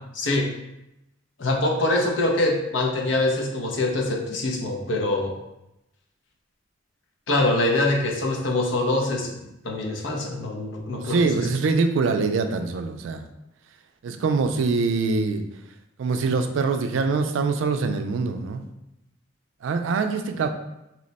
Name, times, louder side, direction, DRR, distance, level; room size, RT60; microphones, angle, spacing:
voice 1, 0.1-0.5 1.4-5.4 7.3-11.5, left 2 dB, 80° left, 0 dB, 0.7 m, -24 dB
voice 2, 11.0-13.2 14.0-15.4 16.0-18.6 19.6-20.5, right 4 dB, 80° right, 7 dB, 0.3 m, -24 dB
2.9 x 2.1 x 4.0 m, 0.88 s
head